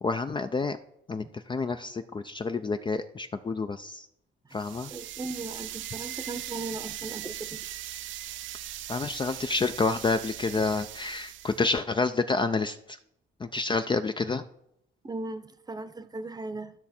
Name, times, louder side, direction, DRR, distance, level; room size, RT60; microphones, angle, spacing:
voice 1, 0.0-0.8 1.1-4.1 4.5-4.9 8.9-13.0 13.4-14.4, left 3 dB, 25° left, 9 dB, 0.4 m, -29 dB
sound 1, 4.5-11.7, right 12 dB, 75° right, 0.5 m, -39 dB
voice 2, 4.9-7.6 15.0-16.7, right 2 dB, 20° right, 11 dB, 0.7 m, -37 dB
12.5 x 5.9 x 4.3 m, 0.76 s
cardioid pair, 90°, 20 cm